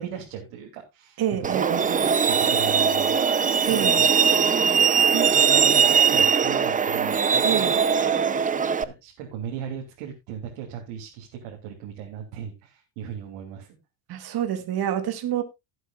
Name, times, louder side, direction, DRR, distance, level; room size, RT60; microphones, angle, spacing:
voice 1, 0.0-1.2 1.5-3.2 3.7-4.1 5.1-7.7 8.0-13.7, right 8 dB, 80° right, 3.0 m, -37 dB
voice 2, 1.2-1.8 3.6-4.1 7.4-7.8 14.1-15.4, right 10 dB, 50° right, 2.2 m, -27 dB
Truck, 1.4-8.8, right 6 dB, 15° right, 0.6 m, -20 dB
17.5 x 8.1 x 2.4 m
supercardioid pair, 110°, 48 cm